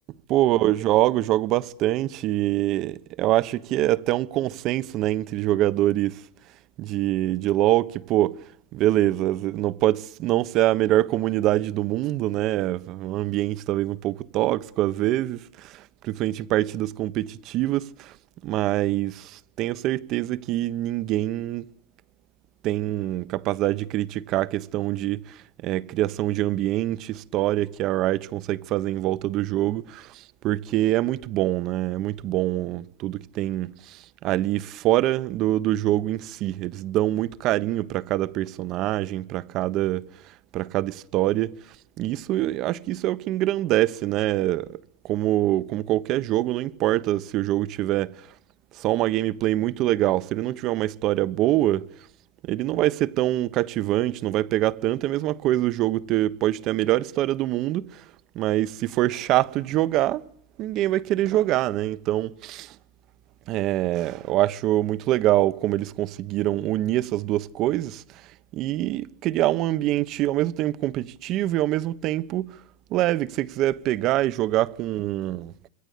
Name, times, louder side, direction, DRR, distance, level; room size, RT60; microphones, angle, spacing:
voice 1, 0.3-6.2 6.8-8.4 8.7-18.1 18.4-21.7 22.6-40.1 40.5-41.5 42.0-44.8 45.0-48.2 48.8-51.9 52.4-58.0 58.3-60.3 60.6-62.7 63.5-68.0 68.5-72.5 72.9-75.7, right 15 dB, 50° right, 1.1 m, -24 dB
26.5 x 22.5 x 8.5 m
supercardioid pair, 125°, 0 cm